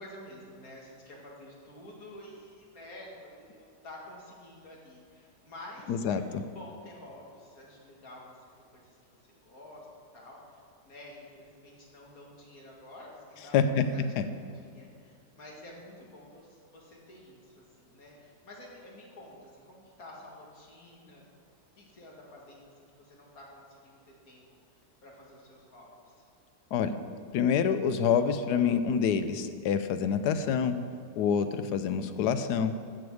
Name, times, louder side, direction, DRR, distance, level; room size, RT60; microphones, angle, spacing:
voice 1, 0.0-8.4 8.7-9.0 9.4-9.9 10.1-10.4 10.8-21.2 21.8-24.4 25.0-26.1, left 1 dB, 55° left, -2 dB, 2.3 m, -50 dB
voice 2, 5.9-6.2 13.5-13.8 14.2-14.3 26.7-27.0 27.3-30.8 31.2-32.7, left 7 dB, 75° left, 10 dB, 1.1 m, -26 dB
14.0 x 6.8 x 4.7 m, 2.3 s
omnidirectional pair, 1.8 m